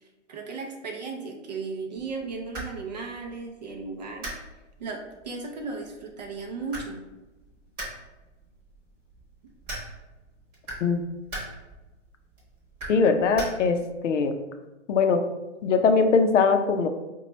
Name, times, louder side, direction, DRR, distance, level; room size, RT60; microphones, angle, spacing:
voice 1, 0.3-4.3 4.8-7.0, right 4 dB, 35° right, 2 dB, 0.4 m, -35 dB
sound 1, 2.0-14.0, right 1 dB, 15° right, 0.9 m, -42 dB
voice 2, 12.9-13.8 14.0-14.4 14.9-15.2 15.6-16.9, left 5 dB, 75° left, 7 dB, 0.6 m, -21 dB
2.9 x 2.2 x 4.1 m, 1.1 s
hypercardioid pair, 155°, 37 cm